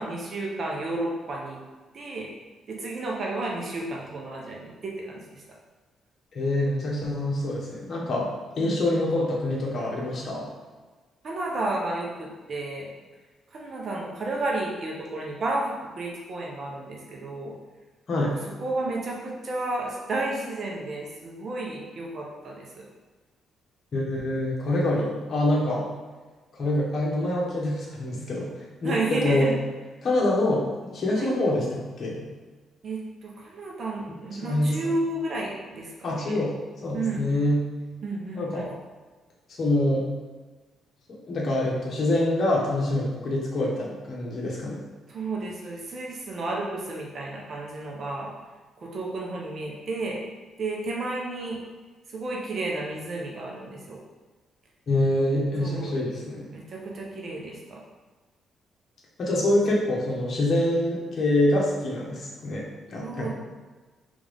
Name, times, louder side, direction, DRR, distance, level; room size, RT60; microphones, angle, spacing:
voice 1, 0.0-1.6 1.9-2.3 2.7-5.4 8.6-8.8 11.2-12.9 13.5-17.5 18.6-22.9 28.8-29.5 31.1-31.3 32.8-36.4 36.9-37.3 38.0-38.7 45.1-48.3 48.8-50.2 50.6-51.6 52.1-54.0 55.6-55.9 56.5-57.8 63.0-63.3, right 2 dB, 50° right, -2 dB, 1.0 m, -32 dB
voice 2, 6.3-8.3 8.6-10.5 18.1-18.3 23.9-25.9 26.6-28.5 28.8-29.5 30.0-32.3 34.4-34.8 36.0-36.5 36.8-37.6 38.4-38.7 39.6-40.1 41.3-44.8 54.9-56.5 59.2-63.3, left 1 dB, 50° left, -4 dB, 1.3 m, -25 dB
3.6 x 3.5 x 3.6 m, 1.3 s
cardioid pair, 90°, 0 cm